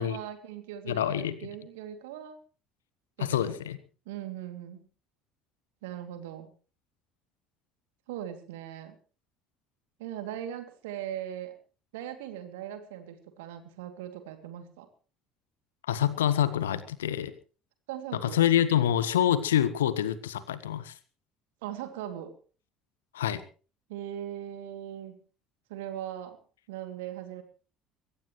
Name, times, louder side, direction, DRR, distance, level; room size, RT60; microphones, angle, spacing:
voice 1, 0.0-2.4 3.2-3.4 4.1-4.9 5.8-6.5 8.1-9.0 10.0-11.5 11.9-14.9 17.9-18.4 21.6-22.3 23.9-25.2 25.7-26.4 26.7-27.4, right 11 dB, 65° right, 8 dB, 2.7 m, -39 dB
voice 2, 0.9-1.4 3.2-3.8 15.9-17.3 18.2-20.9 23.1-23.4, left 10 dB, 75° left, 15 dB, 1.4 m, -26 dB
23.0 x 17.0 x 3.2 m, 0.38 s
figure-of-eight pair, 60°, 0 cm